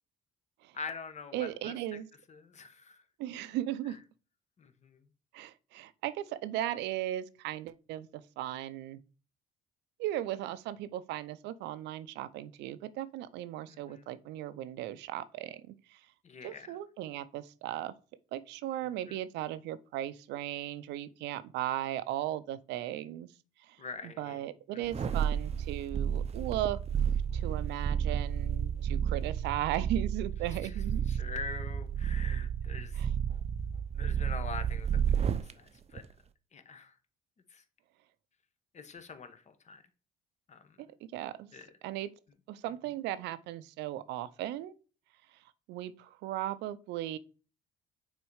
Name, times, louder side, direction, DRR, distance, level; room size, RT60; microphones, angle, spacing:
voice 1, 0.7-1.7 2.3-3.0 3.3-3.4 4.6-5.0 13.7-14.0 16.2-16.8 19.1-19.2 23.8-24.4 24.7-24.8 30.6-30.8 31.1-33.0 33.9-36.0 36.5-36.9 37.5-37.6 38.7-39.8 40.5-40.8 41.5-41.7, left 5 dB, 40° left, 1.3 m, -44 dB
voice 2, 1.3-2.1 3.2-4.0 5.3-9.0 10.0-16.0 16.4-17.9 18.3-23.3 23.6-26.8 27.3-31.1 32.9-33.1 40.8-40.9 41.1-41.5 41.8-42.1 42.5-44.7 45.7-47.2, right 13 dB, 75° right, 0.6 m, -37 dB
sound 1, 24.8-35.5 35.9-36.1, right 8 dB, 35° right, 0.6 m, -31 dB
6.3 x 4.1 x 4.8 m
supercardioid pair, 70°, 18 cm